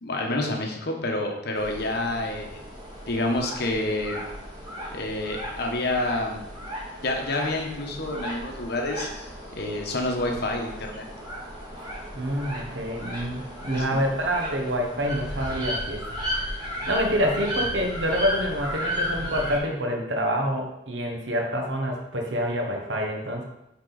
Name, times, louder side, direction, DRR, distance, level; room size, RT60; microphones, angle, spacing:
voice 1, 0.0-2.6 3.1-4.2 4.9-6.4 7.0-11.0 13.7-14.0, left 2 dB, 60° left, 2 dB, 1.1 m, -28 dB
sound 1, 1.5-19.6, equal, 20° right, 2.1 m, -35 dB
voice 2, 12.1-16.0 16.3-16.5 16.9-23.4, equal, 65° right, 1 dB, 1.2 m, -27 dB
8.1 x 3.7 x 4.0 m, 0.87 s
head